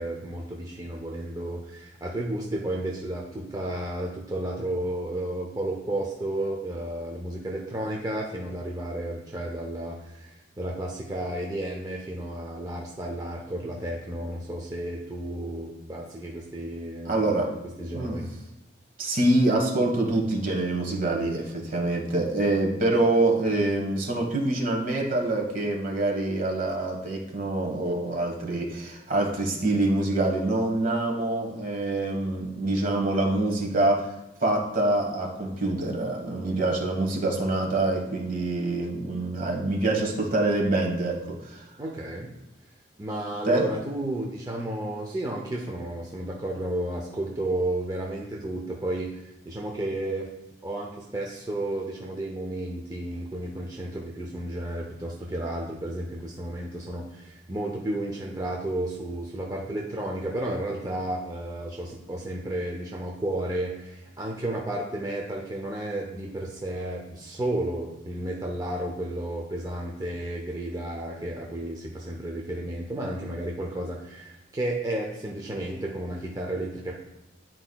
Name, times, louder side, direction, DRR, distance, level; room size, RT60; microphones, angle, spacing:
voice 1, 0.0-17.1 17.8-18.3 41.8-42.3 43.0-50.3 50.6-77.0, right 1 dB, 20° right, -1 dB, 0.6 m, -32 dB
voice 2, 17.0-17.5 17.9-18.2 19.0-34.1 34.4-41.6 43.4-43.7, right 2 dB, 50° right, 1 dB, 1.4 m, -25 dB
9.6 x 4.4 x 2.3 m, 0.95 s
head